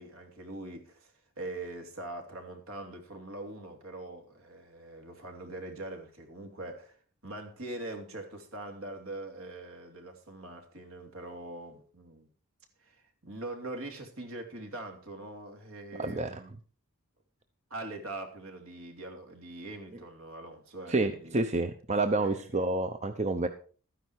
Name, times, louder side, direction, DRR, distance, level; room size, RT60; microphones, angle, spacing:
voice 1, 0.0-7.0 7.2-12.3 12.8-16.5 17.7-21.4 22.2-22.5, right 2 dB, 65° right, 3.2 m, -42 dB
voice 2, 16.0-16.4 20.9-23.5, right 2 dB, 30° right, 0.8 m, -29 dB
13.0 x 10.0 x 4.7 m
head